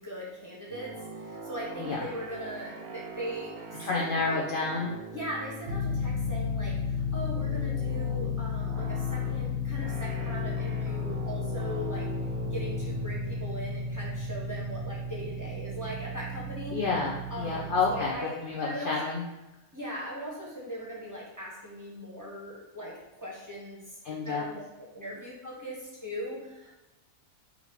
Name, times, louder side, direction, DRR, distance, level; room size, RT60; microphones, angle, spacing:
voice 1, 0.0-4.4 5.1-12.1 12.4-16.8 17.3-18.4 18.6-19.0 19.7-24.6 24.9-26.8, equal, 15° right, -6 dB, 0.8 m, -39 dB
sound 1, 0.7-17.2, right 3 dB, 85° right, 1.1 m, -43 dB
voice 2, 3.8-5.0 16.7-18.2 18.4-19.2 24.0-24.4, left 4 dB, 65° left, -2 dB, 0.5 m, -29 dB
sound 2, 5.6-18.1, left 4 dB, 50° right, 0.9 m, -33 dB
4.1 x 2.7 x 4.4 m, 1.0 s
omnidirectional pair, 1.5 m